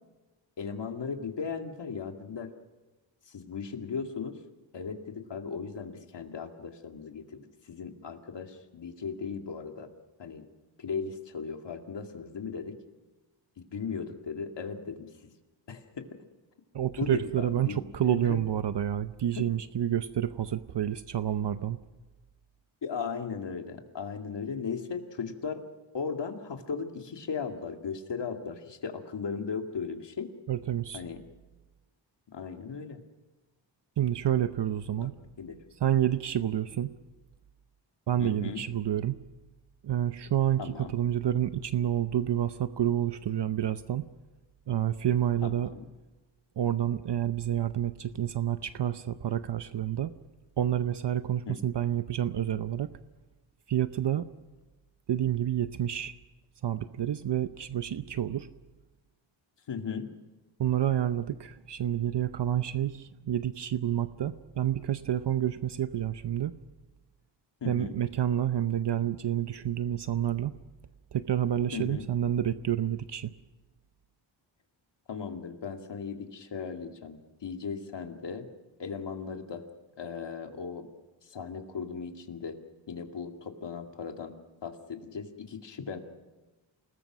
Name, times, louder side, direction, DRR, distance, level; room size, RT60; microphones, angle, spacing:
voice 1, 0.6-2.5 3.3-4.4 4.7-9.9 10.2-10.4 10.8-12.8 13.6-15.3 15.7-16.1 17.0-18.4 22.8-25.7 25.9-30.3 30.9-31.2 32.3-33.0 35.0-35.6 38.2-38.6 40.6-40.9 45.4-45.9 51.5-51.6 59.7-60.1 67.6-67.9 71.7-72.1 75.1-78.5 78.8-79.6 79.9-80.9 81.2-82.6 82.9-84.3 84.6-86.0, left 5 dB, 60° left, 4 dB, 2.4 m, -37 dB
voice 2, 16.7-21.8 30.5-31.0 34.0-35.2 35.8-36.9 38.1-39.2 39.8-44.1 44.7-45.7 46.6-50.1 50.6-52.9 53.7-54.3 55.1-56.1 56.6-58.5 60.6-66.5 67.7-70.5 71.1-73.3, right 11 dB, 60° right, 11 dB, 0.8 m, -29 dB
28.5 x 19.5 x 6.1 m, 1.2 s
wide cardioid pair, 110°, 47 cm